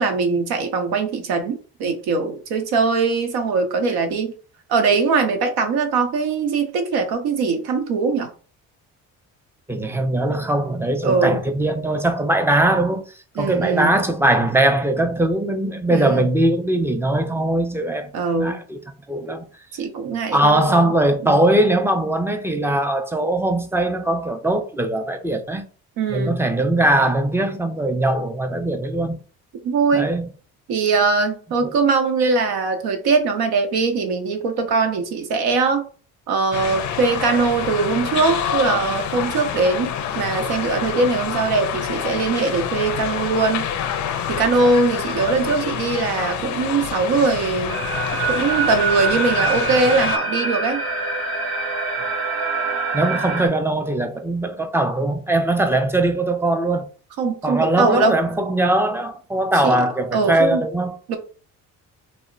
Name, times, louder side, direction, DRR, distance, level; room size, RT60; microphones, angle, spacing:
voice 1, 0.0-4.3 4.7-8.3 11.0-11.4 13.4-13.9 15.9-16.3 18.1-18.6 19.7-20.9 21.2-21.4 26.0-26.3 29.6-30.1 30.7-35.8 36.3-43.7 44.3-47.8 48.3-50.8 57.2-58.2 59.6-59.8 60.1-60.6 61.1-61.2, right 4 dB, 75° right, 0.7 m, -21 dB
voice 2, 9.7-13.0 13.4-18.8 19.1-19.5 20.3-25.6 26.1-29.2 29.9-30.3 31.6-31.7 52.9-56.9 57.4-61.0, right 1 dB, 5° right, 0.4 m, -20 dB
sound 1, 36.5-50.2, left 8 dB, 50° left, 0.4 m, -27 dB
sound 2, 47.7-53.5, right 4 dB, 40° right, 0.8 m, -25 dB
2.0 x 2.0 x 3.7 m
supercardioid pair, 75°, 38 cm